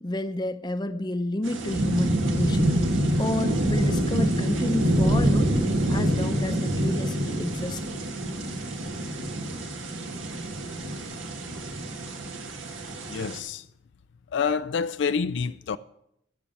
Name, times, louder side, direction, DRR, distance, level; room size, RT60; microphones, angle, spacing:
voice 1, 0.0-2.8 3.2-5.5 5.9-7.8, left 1 dB, 20° left, 0.7 m, -30 dB
sound 1, 1.4-13.4, right 1 dB, 85° right, 2.1 m, -26 dB
voice 2, 13.1-13.7 14.3-15.8, left 6 dB, 65° left, 0.4 m, -27 dB
14.0 x 7.5 x 7.1 m
head